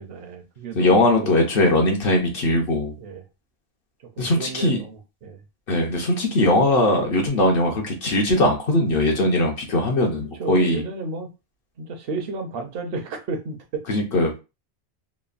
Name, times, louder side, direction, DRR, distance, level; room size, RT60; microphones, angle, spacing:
voice 1, 0.0-1.3 3.0-3.2 4.2-5.4 10.2-11.3 11.8-13.8, right 3 dB, 65° right, 5 dB, 0.8 m, -32 dB
voice 2, 0.7-2.9 4.2-4.8 5.7-10.8 13.9-14.4, left 1 dB, 60° left, 2 dB, 0.8 m, -20 dB
3.0 x 2.1 x 2.4 m, 0.28 s
omnidirectional pair, 1.1 m